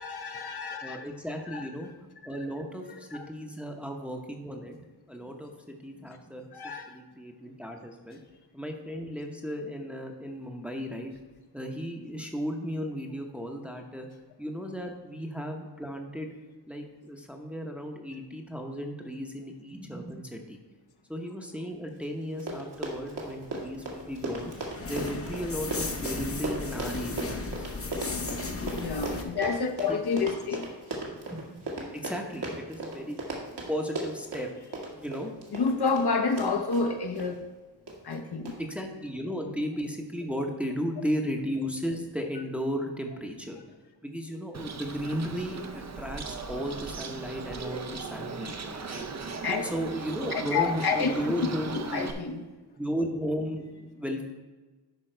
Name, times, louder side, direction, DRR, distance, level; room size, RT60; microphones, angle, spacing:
voice 1, 0.0-1.0 1.5-1.9 2.8-3.2 6.5-7.0 14.8-14.9 28.6-31.2 35.5-37.4 38.0-38.5 48.7-48.8 49.4-49.7 50.3-51.1 51.7-52.4, left 4 dB, 60° left, 0.8 m, -30 dB
voice 2, 0.8-1.9 2.2-4.7 5.1-6.5 6.9-8.2 8.5-11.1 11.5-14.1 14.4-16.3 16.7-20.6 21.1-24.5 24.9-27.6 29.9-30.0 31.3-31.6 31.9-33.2 33.7-34.5 34.9-35.3 38.6-43.6 44.0-48.5 48.9-49.0 49.7-52.1 52.8-54.2, equal, 5° right, 0.9 m, -35 dB
Run, 22.0-22.1 22.3-37.3 37.9-38.1 38.5-38.6, right 2 dB, 70° right, 2.0 m, -36 dB
sound 1, 23.5-29.2, left 3 dB, 30° left, 0.9 m, -36 dB
Bird, 44.5-52.1, right 4 dB, 40° right, 0.7 m, -38 dB
11.5 x 5.1 x 4.5 m
wide cardioid pair, 155°, 44 cm